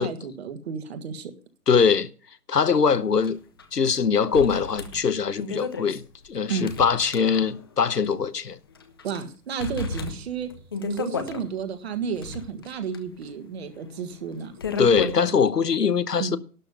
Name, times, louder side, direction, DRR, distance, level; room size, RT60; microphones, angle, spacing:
voice 1, 0.0-1.3 6.5-6.7 9.0-10.5 10.9-14.5 16.2-16.4, right 6 dB, 40° right, 1.7 m, -32 dB
voice 2, 1.7-2.1 2.5-3.4 3.7-6.0 6.3-8.6 14.8-16.4, left 6 dB, 90° left, 1.1 m, -22 dB
sound 1, 3.2-3.3 3.6-3.7 4.3-7.7 8.0-8.1 8.7-9.2 9.6-11.4 12.0-15.3, left 4 dB, 15° left, 0.6 m, -33 dB
12.0 x 6.7 x 6.9 m
figure-of-eight pair, 145°, 46 cm